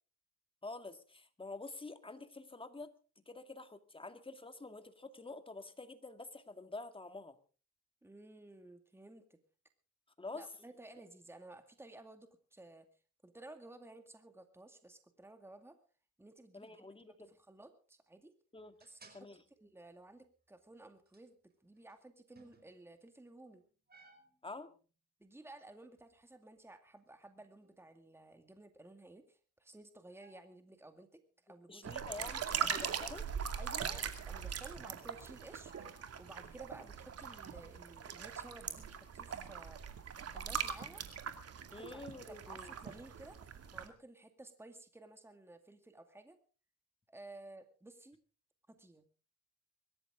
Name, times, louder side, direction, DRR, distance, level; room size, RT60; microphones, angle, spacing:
voice 1, 0.6-2.9 3.3-7.4 10.2-10.5 16.5-17.3 18.5-18.7 19.1-19.4 24.4-24.7 31.7-33.3 41.7-42.9, left 3 dB, 15° left, 9 dB, 2.0 m, -48 dB
voice 2, 8.0-9.4 10.3-12.9 13.2-15.8 16.2-18.3 18.8-21.4 21.6-23.6 25.2-31.9 32.2-32.7 33.6-39.8 40.2-41.0 41.7-43.4 43.7-46.4 47.1-48.2 48.7-49.0, right 2 dB, 10° right, 7 dB, 2.2 m, -55 dB
sound 1, 18.6-19.5 20.8-20.9 21.0-21.2 21.8-22.0 22.3-22.9 23.5-24.8 26.0-26.2 27.2-27.9 30.1-30.6 32.9-33.4 34.3-34.7 35.6-36.4, right 2 dB, 30° right, 4.9 m, -62 dB
sound 2, 31.8-43.9, right 7 dB, 55° right, 2.4 m, -41 dB
24.0 x 13.5 x 3.7 m, 0.37 s
cardioid pair, 90°, 30 cm